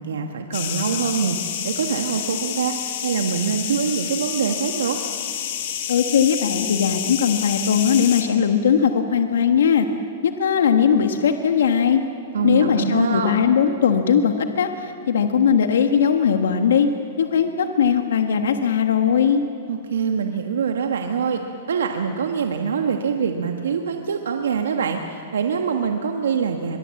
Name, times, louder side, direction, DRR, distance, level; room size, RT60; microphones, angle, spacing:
voice 1, 0.0-5.0 12.3-13.3 19.7-21.4 21.7-26.8, right 6 dB, 85° right, 4 dB, 1.5 m, -24 dB
sound 1, 0.5-8.2, left 9 dB, 60° left, 3.5 m, -29 dB
voice 2, 5.9-9.9 10.2-12.0 12.4-16.9 17.2-19.4, left 7 dB, 80° left, 6 dB, 1.4 m, -19 dB
23.0 x 22.5 x 7.8 m, 2.6 s
hypercardioid pair, 130°, 0 cm